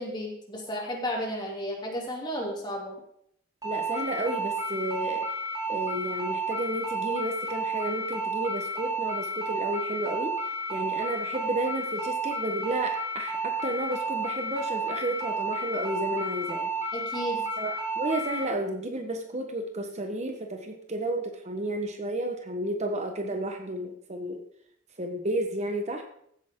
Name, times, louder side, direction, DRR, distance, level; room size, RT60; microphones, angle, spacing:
voice 1, 0.0-2.9 16.9-17.4, equal, 20° left, -1 dB, 2.8 m, -33 dB
sound 1, 3.6-18.4, right 2 dB, 20° right, 4.3 m, -31 dB
voice 2, 3.6-5.3 5.7-10.4 10.7-16.7 17.6-24.4 25.0-26.0, right 1 dB, 35° right, 4 dB, 1.2 m, -32 dB
15.5 x 8.9 x 3.7 m, 0.70 s
head